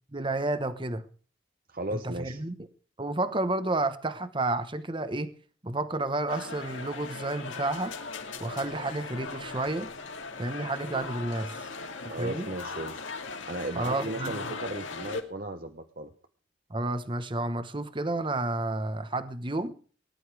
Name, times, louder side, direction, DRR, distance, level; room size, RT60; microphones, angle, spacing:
voice 1, 0.1-1.1 1.9-2.5 3.0-5.3 5.6-7.9 8.4-9.9 10.4-11.5 12.0-12.5 13.8-14.4 16.7-19.7, right 2 dB, 25° right, 1.1 m, -31 dB
voice 2, 1.7-2.4 12.1-13.1 13.5-16.1, right 2 dB, 45° right, 1.0 m, -36 dB
sound 1, 6.3-15.2, left 4 dB, 75° left, 2.5 m, -39 dB
19.0 x 11.0 x 4.8 m
head